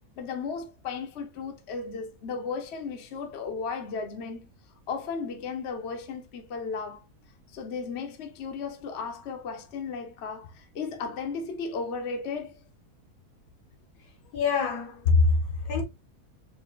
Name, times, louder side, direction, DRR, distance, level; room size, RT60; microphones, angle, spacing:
voice 1, 0.2-4.5 4.9-7.0 7.5-12.6, left 5 dB, 50° left, 0.9 m, -35 dB
voice 2, 14.3-15.8, left 4 dB, 80° left, 1.6 m, -24 dB
5.0 x 2.8 x 2.4 m
omnidirectional pair, 1.6 m